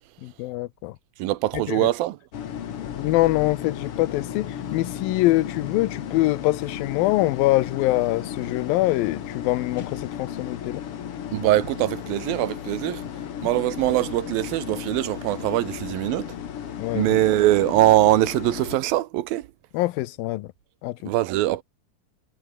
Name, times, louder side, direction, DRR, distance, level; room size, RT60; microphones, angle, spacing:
voice 1, 0.2-1.0 1.5-1.9 2.8-10.8 16.8-17.2 19.7-20.5 20.8-21.1, left 18 dB, 85° left, 2.6 m, -24 dB
voice 2, 1.2-2.2 11.3-13.0 13.4-16.3 16.9-19.5 21.1-21.6, right 15 dB, 90° right, 2.8 m, -22 dB
sound 1, 2.3-18.8, left 9 dB, 50° left, 2.0 m, -34 dB
omnidirectional pair, 4.1 m